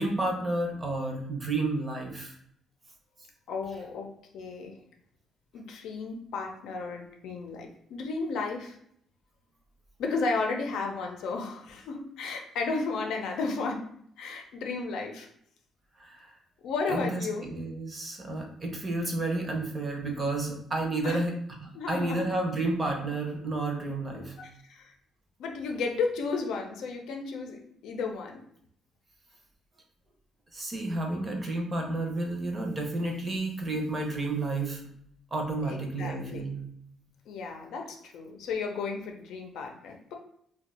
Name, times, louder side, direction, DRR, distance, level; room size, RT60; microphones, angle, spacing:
voice 1, 0.0-2.4 16.0-16.3 16.9-21.3 21.6-24.3 30.5-34.8 35.3-36.6, right 2 dB, 25° right, 1 dB, 0.6 m, -31 dB
voice 2, 3.5-4.7 5.5-8.8 10.0-13.8 14.2-15.3 16.6-17.5 21.0-21.2 21.7-22.2 24.4-24.9 25.4-28.4 35.6-36.4 37.3-40.2, left 4 dB, 90° left, 2 dB, 0.5 m, -33 dB
2.6 x 2.3 x 4.0 m, 0.68 s
cardioid pair, 160°, 0 cm